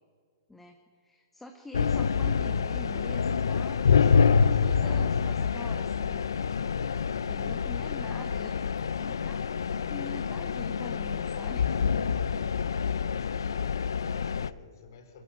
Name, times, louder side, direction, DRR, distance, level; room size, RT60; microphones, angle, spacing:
voice 1, 0.5-6.3 7.2-8.7 9.0-9.4 9.8-11.7, left 2 dB, 5° left, 3 dB, 1.8 m, -45 dB
sound 1, 1.7-14.5, left 6 dB, 85° left, 0.6 m, -27 dB
voice 2, 8.0-8.6 9.1-9.4 12.6-15.2, left 5 dB, 65° left, 5 dB, 4.2 m, -52 dB
22.5 x 14.5 x 9.2 m, 2.1 s
hypercardioid pair, 130°, 2 cm